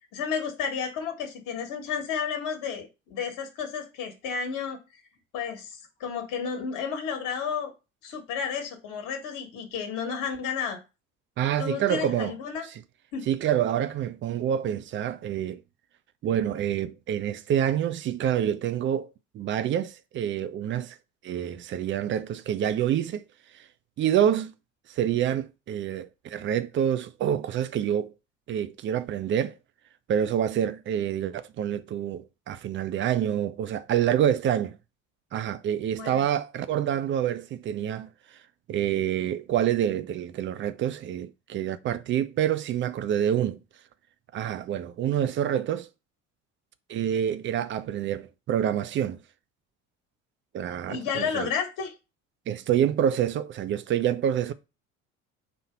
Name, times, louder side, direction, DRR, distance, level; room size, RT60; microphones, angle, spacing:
voice 1, 0.1-4.8 5.3-7.7 8.0-10.8 11.6-12.7 13.1-13.3 36.0-36.2 50.9-51.9, left 6 dB, 50° left, 1.4 m, -32 dB
voice 2, 11.4-12.3 13.3-15.6 16.2-19.1 19.3-21.0 21.2-23.2 24.0-24.5 25.0-28.1 28.5-29.5 30.1-34.8 35.3-38.1 38.7-43.6 44.3-45.9 46.9-49.2 50.5-51.5 52.5-54.5, right 10 dB, 30° right, 0.5 m, -27 dB
4.4 x 2.7 x 4.5 m
figure-of-eight pair, 60°, 41 cm